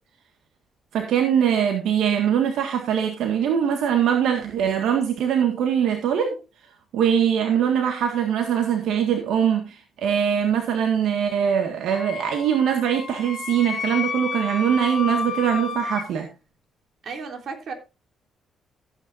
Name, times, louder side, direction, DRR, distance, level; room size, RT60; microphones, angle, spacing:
voice 1, 0.9-6.4 6.9-16.3, right 8 dB, 80° right, 4 dB, 1.7 m, -22 dB
Wind instrument woodwind instrument, 11.9-16.1, left 5 dB, 50° left, 4.3 m, -31 dB
voice 2, 17.0-17.7, right 5 dB, 60° right, 3 dB, 3.6 m, -34 dB
14.5 x 9.2 x 2.6 m, 0.29 s
cardioid pair, 90°, 0 cm